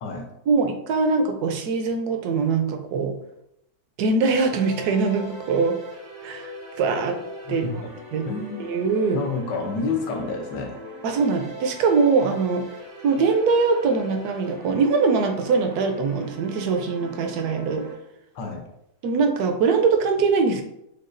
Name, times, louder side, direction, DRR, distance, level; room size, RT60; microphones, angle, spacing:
voice 1, 0.5-3.2 4.0-5.8 6.2-6.5 6.8-7.2 7.5-7.8 8.1-8.3 8.6-9.2 11.0-12.7 13.0-17.9 19.0-20.6, right 4 dB, 70° right, 5 dB, 1.0 m, -22 dB
sound 1, 4.2-17.9, left 1 dB, 90° right, 1.9 m, -41 dB
voice 2, 7.5-7.9 8.2-8.7 9.1-10.8 18.3-18.6, left 4 dB, 80° left, 3 dB, 1.4 m, -29 dB
6.5 x 2.3 x 2.5 m, 0.80 s
omnidirectional pair, 1.8 m